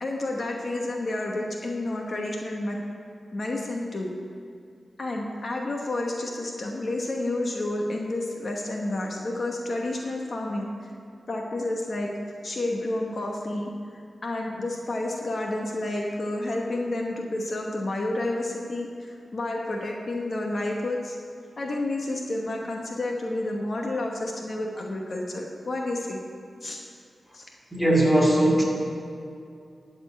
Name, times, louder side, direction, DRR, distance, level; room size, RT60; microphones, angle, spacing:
voice 1, 0.0-2.8 3.3-4.1 5.0-10.9 11.3-21.2 21.6-26.2 26.6-26.8 27.3-27.5, left 2 dB, 55° left, 0 dB, 1.0 m, -30 dB
voice 2, 27.7-28.6, right 1 dB, 5° right, -4 dB, 2.6 m, -19 dB
12.0 x 4.3 x 8.1 m, 2.4 s
wide cardioid pair, 95°, 0 cm